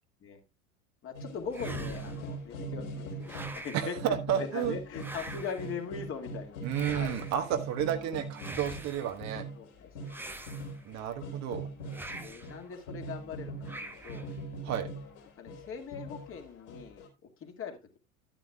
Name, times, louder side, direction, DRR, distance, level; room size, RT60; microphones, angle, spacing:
voice 1, 1.0-7.2 9.6-10.1 11.9-14.3 15.4-17.0 17.4-18.0, left 6 dB, 30° left, 4 dB, 2.1 m, -41 dB
sound 1, 1.1-3.6 4.0-17.1, right 2 dB, 55° left, 3.5 m, -41 dB
sound 2, 1.5-2.3 3.2-4.0 4.9-5.8 6.7-7.5 8.3-9.1 10.1-11.0 11.9-12.6 13.6-14.3, right 1 dB, 5° right, 1.0 m, -44 dB
voice 2, 3.7-4.7 6.6-9.4 10.8-11.7 14.6-14.9, right 10 dB, 40° right, 7 dB, 1.2 m, -31 dB
11.5 x 10.0 x 2.3 m, 0.24 s
figure-of-eight pair, 80°, 42 cm